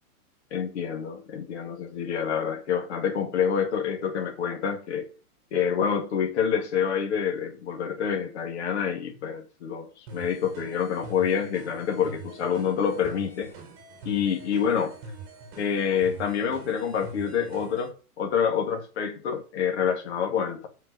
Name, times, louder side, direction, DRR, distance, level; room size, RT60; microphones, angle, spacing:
voice 1, 0.5-5.1 5.5-13.5 14.0-14.9 15.6-20.7, left 7 dB, 45° left, 2.1 m, -27 dB
sound 1, 10.1-17.9, right 3 dB, 20° right, 1.8 m, -44 dB
7.7 x 4.9 x 6.7 m
hypercardioid pair, 175°, 46 cm